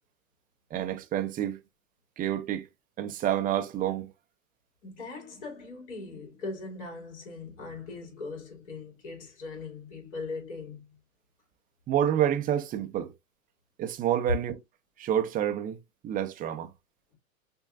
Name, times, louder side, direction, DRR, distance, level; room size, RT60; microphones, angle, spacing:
voice 1, 0.7-1.6 2.2-2.7 3.0-4.1 11.9-13.1 13.8-14.6 15.0-15.8 16.0-16.7, right 10 dB, 20° right, 0.6 m, -28 dB
voice 2, 4.8-11.0, left 3 dB, 55° left, 2.9 m, -40 dB
6.1 x 2.7 x 2.4 m
figure-of-eight pair, 100°, 42 cm